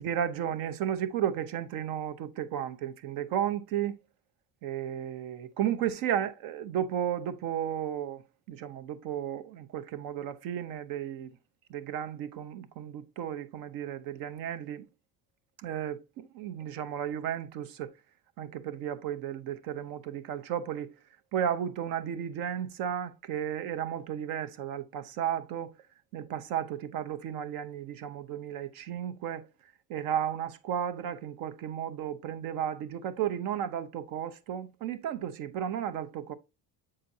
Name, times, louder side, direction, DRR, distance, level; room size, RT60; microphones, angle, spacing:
voice 1, 0.0-4.0 4.6-8.2 8.5-11.3 11.7-14.8 15.6-17.9 18.4-20.9 21.3-25.7 26.1-29.5 29.9-36.3, right 9 dB, 55° right, 0.7 m, -33 dB
7.5 x 5.8 x 2.6 m
cardioid pair, 180°, 40 cm